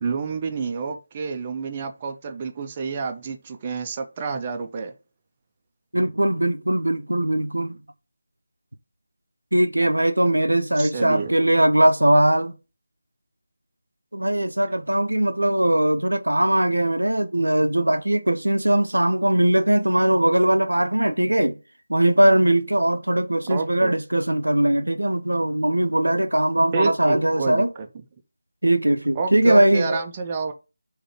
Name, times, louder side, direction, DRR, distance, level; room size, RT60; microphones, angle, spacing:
voice 1, 0.0-4.9 10.8-11.3 23.5-23.9 26.7-27.9 29.2-30.5, right 4 dB, 25° right, 0.5 m, -29 dB
voice 2, 5.9-7.8 9.5-12.5 14.1-21.6 21.9-27.7 28.6-30.0, right 1 dB, 75° right, 0.5 m, -20 dB
3.8 x 3.1 x 2.9 m
figure-of-eight pair, 160°, 0 cm